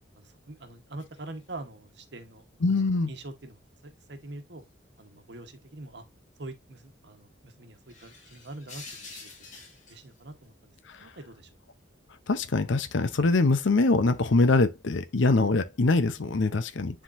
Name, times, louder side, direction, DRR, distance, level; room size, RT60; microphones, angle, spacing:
voice 1, 0.1-2.4 2.7-2.8 3.1-4.6 5.0-6.0 6.4-9.3 9.9-11.5 16.4-16.5, right 2 dB, 60° right, 1.2 m, -44 dB
sound 1, 2.3-4.3 4.6-5.6 5.8-5.9 6.3-6.5 7.0-7.1 7.7-11.2 11.5-13.6 14.3-14.5 14.9-15.3, left 4 dB, 40° left, 2.1 m, -49 dB
voice 2, 2.6-3.1 10.9-11.1 12.3-17.0, left 3 dB, 75° left, 0.7 m, -23 dB
9.9 x 3.8 x 2.6 m
head